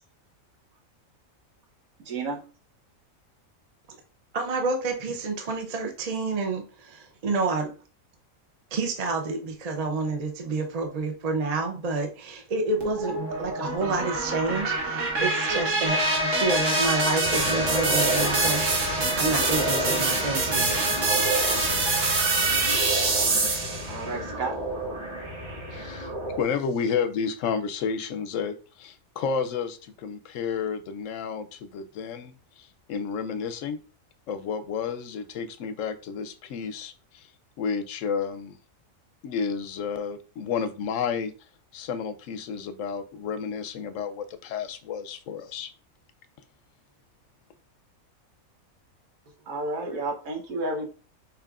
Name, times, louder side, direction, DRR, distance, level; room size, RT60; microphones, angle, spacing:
voice 1, 2.1-2.4 23.9-24.6 49.5-50.9, right 2 dB, 85° right, 1 dB, 1.4 m, -31 dB
voice 2, 4.3-7.7 8.7-21.0, right 3 dB, 40° right, 4 dB, 0.6 m, -29 dB
sound 1, 12.8-23.9, right 3 dB, 65° right, 1.4 m, -26 dB
sound 2, 15.9-21.7, left 2 dB, 45° left, 0.3 m, -31 dB
sound 3, 17.2-26.4, right 1 dB, 20° right, 1.9 m, -32 dB
voice 3, 25.7-26.1 26.4-33.8 34.3-37.3 37.6-38.6 39.2-41.3 41.7-45.7, left 6 dB, 70° left, 10 dB, 0.9 m, -31 dB
6.7 x 3.1 x 2.4 m, 0.36 s
omnidirectional pair, 1.4 m